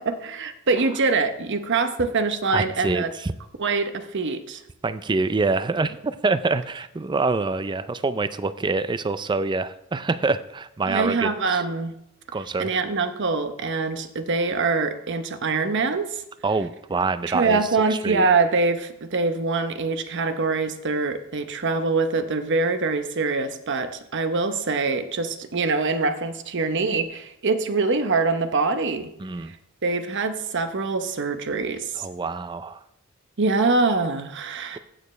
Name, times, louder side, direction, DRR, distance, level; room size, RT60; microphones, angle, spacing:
voice 1, 0.0-3.1 3.6-4.6 10.9-11.9 12.6-16.2 17.3-29.1 29.4-29.6 29.8-32.1 33.4-34.8, right 3 dB, 55° right, 9 dB, 0.8 m, -24 dB
voice 2, 2.5-3.3 4.8-11.6 12.3-12.7 16.4-17.6 17.9-18.3 29.2-29.5 32.0-32.8, right 3 dB, 20° right, 14 dB, 0.4 m, -26 dB
15.0 x 6.7 x 3.2 m, 0.79 s
head